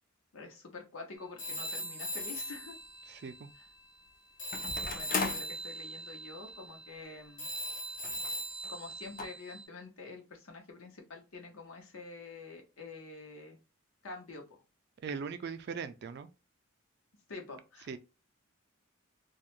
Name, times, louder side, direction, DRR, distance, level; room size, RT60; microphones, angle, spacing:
voice 1, 0.3-2.7 4.9-7.5 8.7-13.6 14.0-14.4 17.3-18.0, left 3 dB, 80° left, 0.8 m, -47 dB
Telephone, 1.4-4.1 4.4-9.6, right 1 dB, 65° left, 1.2 m, -41 dB
sound 1, 2.2-2.3 4.5-5.5 6.5-6.6 6.8-6.9 8.0-8.3 8.6-8.7 9.2-9.3, left 4 dB, 40° left, 0.4 m, -36 dB
voice 2, 3.1-3.5 15.0-16.3 17.9-18.0, right 5 dB, 50° right, 0.3 m, -40 dB
2.4 x 2.0 x 2.9 m
head